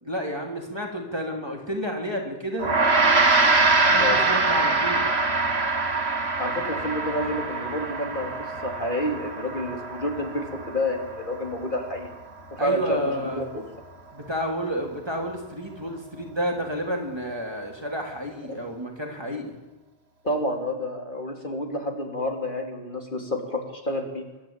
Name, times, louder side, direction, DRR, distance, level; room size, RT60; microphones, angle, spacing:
voice 1, 0.0-2.7 3.9-5.1 12.6-13.5 14.1-19.5, equal, 25° right, 1 dB, 3.0 m, -30 dB
Gong, 2.6-12.1, right 3 dB, 80° right, 2.2 m, -24 dB
voice 2, 6.4-12.1 12.5-13.1 13.4-13.6 18.5-18.6 20.2-24.2, left 1 dB, 55° left, 2 dB, 2.9 m, -29 dB
24.0 x 12.5 x 8.7 m, 1.1 s
omnidirectional pair, 1.0 m